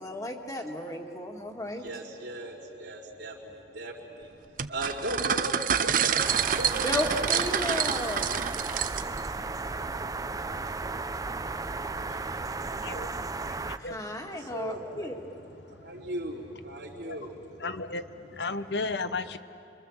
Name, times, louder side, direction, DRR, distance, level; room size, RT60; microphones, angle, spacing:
voice 1, 0.0-1.9 6.8-8.3 13.8-15.2, left 1 dB, 20° left, 2 dB, 2.1 m, -33 dB
voice 2, 1.8-4.4 4.7-5.5 5.8-6.3 6.6-6.7 7.0-7.1 7.3-7.7 14.3-15.1 15.8-17.3, right 1 dB, 90° right, -6 dB, 3.0 m, -38 dB
sound 1, 4.6-9.3, right 8 dB, 50° right, 0.8 m, -28 dB
sound 2, 6.2-13.8, right 3 dB, 20° right, 0.6 m, -34 dB
voice 3, 17.6-18.0 18.3-19.4, left 3 dB, 70° left, 11 dB, 1.0 m, -33 dB
29.0 x 24.0 x 7.3 m, 2.7 s
head